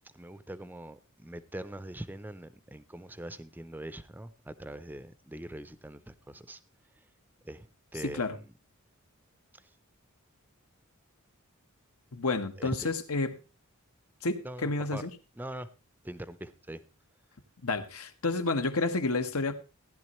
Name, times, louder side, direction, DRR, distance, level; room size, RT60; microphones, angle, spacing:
voice 1, 0.1-6.6 7.4-8.5 9.5-9.7 12.6-12.9 14.4-15.1 15.4-15.7 16.0-16.8, right 1 dB, 10° right, 14 dB, 0.5 m, -42 dB
voice 2, 8.0-8.4 12.1-13.3 14.2-15.1 17.6-19.5, left 3 dB, 80° left, 7 dB, 1.3 m, -30 dB
15.5 x 11.0 x 3.1 m, 0.29 s
head